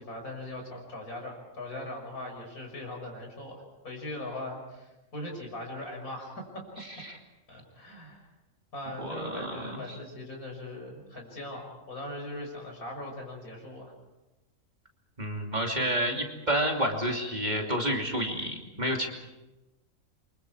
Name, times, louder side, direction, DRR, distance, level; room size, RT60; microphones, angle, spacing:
voice 1, 0.0-6.7 7.5-8.3 8.7-13.9, left 1 dB, 80° left, 1 dB, 6.5 m, -40 dB
voice 2, 9.0-10.0 15.2-19.1, equal, 30° right, 1 dB, 2.9 m, -30 dB
28.0 x 25.0 x 4.8 m, 1.0 s
omnidirectional pair, 1.5 m